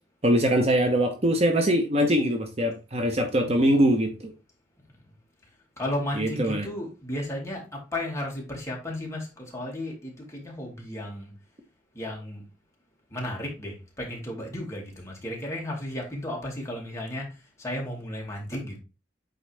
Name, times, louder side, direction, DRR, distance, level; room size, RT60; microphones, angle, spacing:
voice 1, 0.2-4.3 6.2-6.7, equal, 35° right, 0.9 m, -22 dB
voice 2, 5.8-11.3 11.9-12.4 13.1-17.3 17.6-18.8, left 1 dB, 15° left, 2.1 m, -34 dB
8.8 x 4.0 x 3.3 m
head